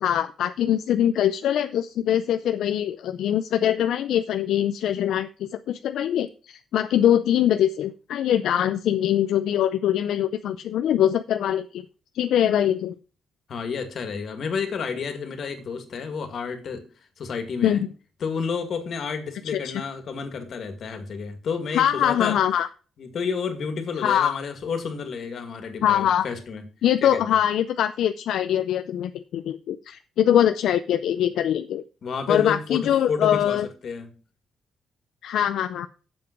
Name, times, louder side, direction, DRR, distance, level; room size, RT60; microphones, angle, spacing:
voice 1, 0.0-11.9 12.1-12.9 17.6-17.8 19.6-19.8 21.7-22.7 24.0-24.4 25.8-26.3 26.8-31.8 32.3-33.7 35.2-35.9, left 10 dB, 80° left, 0.4 m, -23 dB
voice 2, 13.5-16.9 17.2-17.8 18.2-22.4 23.0-26.6 27.0-27.2 32.0-34.1, left 5 dB, 55° left, 2.1 m, -30 dB
7.8 x 7.2 x 6.0 m
cardioid pair, 135°, 0 cm